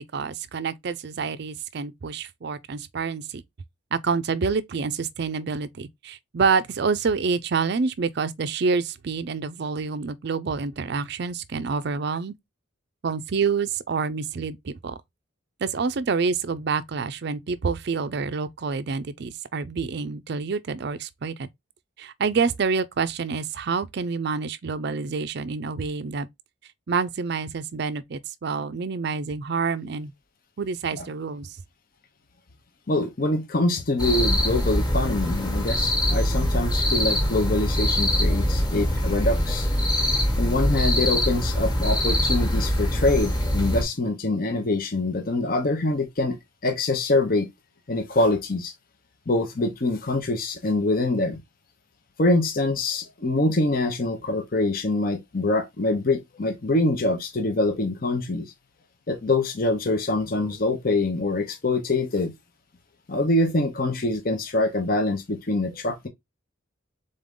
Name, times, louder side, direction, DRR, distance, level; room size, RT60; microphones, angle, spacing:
voice 1, 0.0-3.4 3.9-12.3 13.0-14.9 15.6-21.5 22.0-26.3 26.9-30.1 30.6-31.6, right 5 dB, 55° right, 0.4 m, -27 dB
voice 2, 32.9-39.7 40.4-46.4 46.6-47.5 47.9-48.7 49.3-51.4 52.2-58.5 59.1-62.3 63.1-66.1, left 2 dB, 45° left, 0.8 m, -24 dB
sound 1, 34.0-43.8, equal, 20° left, 1.3 m, -23 dB
3.9 x 3.8 x 3.6 m
head